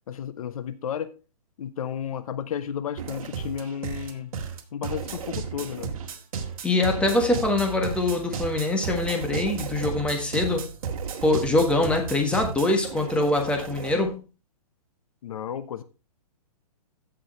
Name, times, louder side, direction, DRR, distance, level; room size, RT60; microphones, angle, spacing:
voice 1, 0.1-1.2 1.6-4.3 4.7-5.9 15.2-15.8, left 8 dB, 60° left, 0.9 m, -33 dB
sound 1, 3.0-14.1, right 6 dB, 60° right, 1.9 m, -34 dB
voice 2, 6.6-10.7 11.2-14.2, left 2 dB, 5° left, 1.4 m, -24 dB
15.0 x 6.2 x 3.2 m
hypercardioid pair, 155°, 20 cm